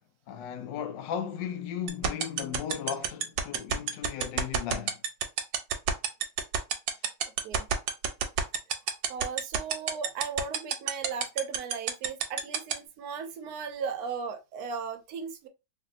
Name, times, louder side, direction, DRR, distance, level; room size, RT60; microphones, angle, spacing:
voice 1, 0.3-5.0, left 8 dB, 85° left, 1.3 m, -36 dB
sound 1, 1.9-12.7, right 9 dB, 90° right, 1.3 m, -26 dB
voice 2, 9.1-15.5, right 6 dB, 70° right, 1.0 m, -36 dB
3.2 x 2.6 x 2.4 m
omnidirectional pair, 1.9 m